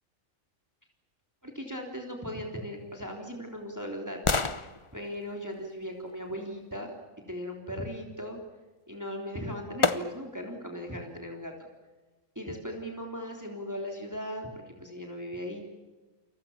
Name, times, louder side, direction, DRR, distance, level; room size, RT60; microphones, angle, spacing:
voice 1, 1.4-4.4 4.9-6.9 7.3-8.4 8.9-11.5 12.3-15.6, equal, 15° right, 1 dB, 3.4 m, -38 dB
sound 1, 2.7-6.8 8.9-9.0 9.8-10.5 11.0-11.1, left 4 dB, 25° left, 0.9 m, -33 dB
29.5 x 24.5 x 7.3 m, 1.2 s
omnidirectional pair, 1.4 m